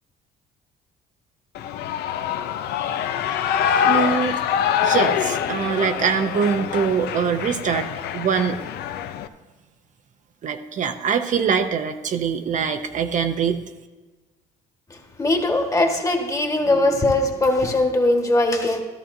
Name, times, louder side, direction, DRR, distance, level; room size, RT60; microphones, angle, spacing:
Shout / Cheering, 1.5-9.3, left 8 dB, 75° left, 0.6 m, -24 dB
voice 1, 3.6-4.4 4.8-7.9 8.1-8.6 10.4-13.6, right 6 dB, 45° right, 6 dB, 0.7 m, -23 dB
voice 2, 15.2-18.8, left 2 dB, 20° left, 2 dB, 1.5 m, -20 dB
13.5 x 13.0 x 2.7 m, 1.2 s
cardioid pair, 110°, 17 cm